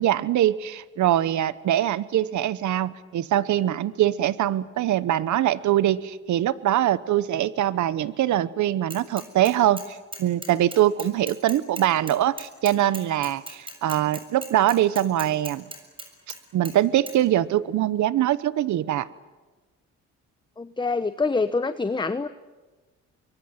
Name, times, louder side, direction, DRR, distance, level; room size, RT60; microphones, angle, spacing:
voice 1, 0.0-15.7 16.5-19.1, right 12 dB, 70° right, 17 dB, 1.0 m, -23 dB
Bicycle / Mechanisms, 8.9-9.9 10.1-16.4 16.7-16.8 17.1-17.2, right 1 dB, 15° right, 6.9 m, -38 dB
voice 2, 20.6-22.3, left 3 dB, 15° left, 12 dB, 0.9 m, -25 dB
25.5 x 23.0 x 9.3 m, 1.2 s
cardioid pair, 90°, 30 cm